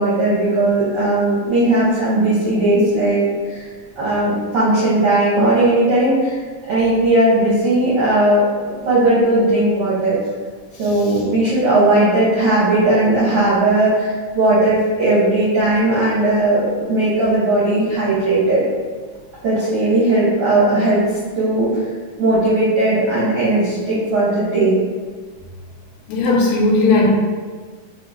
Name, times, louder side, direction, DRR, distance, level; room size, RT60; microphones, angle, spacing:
voice 1, 0.0-3.6 4.0-6.4 6.7-10.2 10.8-18.6 19.4-21.0 21.3-21.8 22.2-24.8, right 2 dB, 80° right, -9 dB, 1.3 m, -17 dB
voice 2, 26.1-27.1, left 2 dB, 85° left, -1 dB, 2.3 m, -16 dB
5.7 x 2.2 x 3.4 m, 1.5 s
omnidirectional pair, 4.0 m